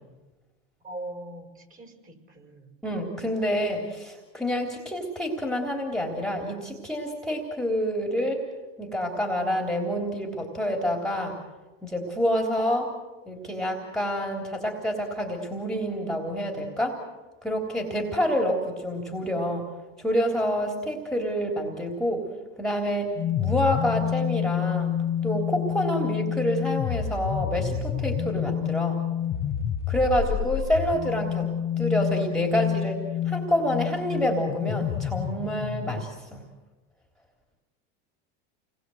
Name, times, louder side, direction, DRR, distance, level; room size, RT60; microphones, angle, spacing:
voice 1, 0.8-2.7, right 1 dB, 25° right, 4 dB, 6.0 m, -41 dB
voice 2, 2.8-8.4 8.8-11.4 11.8-12.9 13.3-17.0 17.4-19.7 20.0-22.3 22.6-24.9 25.2-29.0 29.9-31.5 31.8-36.4, equal, ahead, 0 dB, 3.6 m, -27 dB
sound 1, 23.2-36.0, left 9 dB, 40° left, 1.8 m, -28 dB
29.0 x 21.0 x 7.9 m, 1.2 s
supercardioid pair, 120°, 34 cm